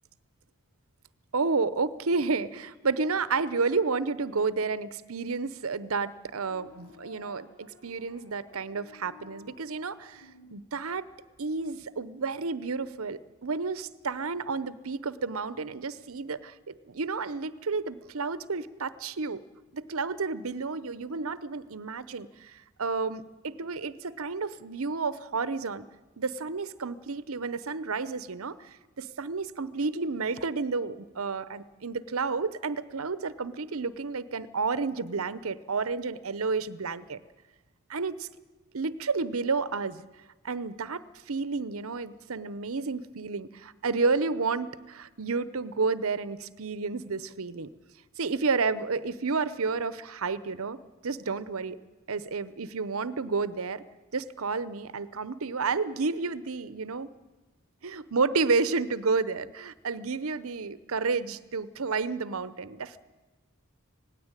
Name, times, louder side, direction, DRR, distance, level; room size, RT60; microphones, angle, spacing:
voice 1, 1.3-11.1 11.4-19.4 19.7-25.9 26.2-28.7 29.0-37.2 37.9-38.3 38.7-40.1 40.4-47.7 48.2-50.8 51.0-51.8 52.1-53.8 54.1-57.1 57.8-63.0, right 4 dB, 75° right, 16 dB, 0.8 m, -31 dB
sound 1, 6.2-10.6, left 3 dB, 60° left, 3.3 m, -53 dB
18.5 x 16.5 x 9.0 m, 1.2 s
head